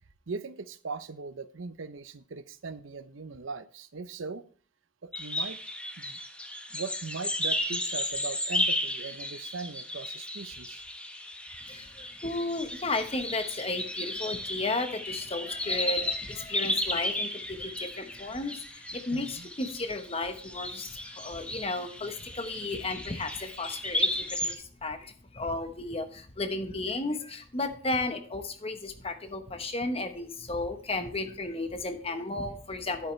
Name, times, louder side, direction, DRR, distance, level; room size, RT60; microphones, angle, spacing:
voice 1, 0.3-4.4 5.0-5.6 6.0-6.2 6.7-10.8 19.1-19.5, right 4 dB, 85° right, 13 dB, 0.7 m, -39 dB
sound 1, 5.1-24.6, left 1 dB, 5° left, 0.9 m, -34 dB
voice 2, 11.7-33.1, left 2 dB, 30° left, 7 dB, 1.1 m, -34 dB
10.5 x 8.6 x 3.2 m, 0.44 s
head